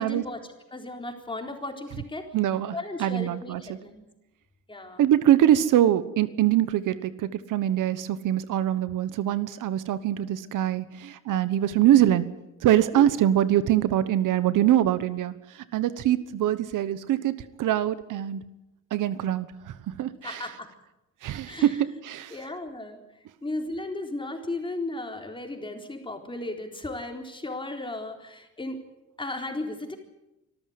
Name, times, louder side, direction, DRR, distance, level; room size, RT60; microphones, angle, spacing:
voice 1, 0.0-2.3 2.7-4.1 4.7-5.0 12.9-13.1 20.2-20.7 21.5-21.8 22.3-23.0 23.4-28.8 29.2-30.0, left 2 dB, 15° left, 4 dB, 4.0 m, -35 dB
voice 2, 2.3-3.8 5.0-12.3 12.6-18.4 18.9-20.4 21.2-22.3, right 12 dB, 80° right, 14 dB, 1.2 m, -24 dB
25.5 x 13.5 x 9.6 m, 0.94 s
cardioid pair, 115°, 31 cm